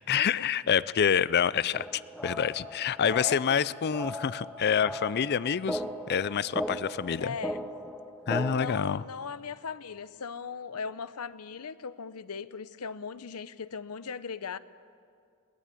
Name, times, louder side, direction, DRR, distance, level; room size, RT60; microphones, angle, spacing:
voice 1, 0.0-1.9 2.2-7.4 8.3-9.0, left 7 dB, 45° left, 19 dB, 0.4 m, -27 dB
sound 1, 1.7-8.7, equal, ahead, 0.9 m, -38 dB
voice 2, 3.0-3.7 7.2-7.7 8.5-14.6, left 5 dB, 90° left, 16 dB, 0.7 m, -38 dB
21.5 x 18.5 x 8.4 m, 2.3 s
head